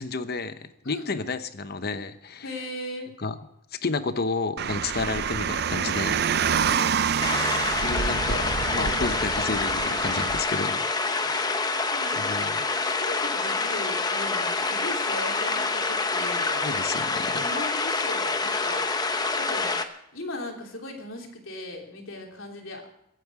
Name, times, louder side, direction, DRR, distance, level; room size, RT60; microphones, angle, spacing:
voice 1, 0.0-2.5 3.2-3.4 3.8-6.2 7.8-10.8 11.2-11.5 12.1-12.6 16.6-17.4, left 3 dB, 50° left, 11 dB, 0.9 m, -31 dB
voice 2, 2.4-3.1 6.1-6.9 11.9-16.7 17.3-18.9 19.4-19.8 20.1-22.9, left 1 dB, 85° left, 1 dB, 3.3 m, -38 dB
Car, 4.6-10.4, right 7 dB, 55° right, 0.5 m, -27 dB
sound 1, 7.2-19.8, left 3 dB, 20° left, 0.9 m, -27 dB
23.0 x 9.2 x 4.8 m, 0.80 s
head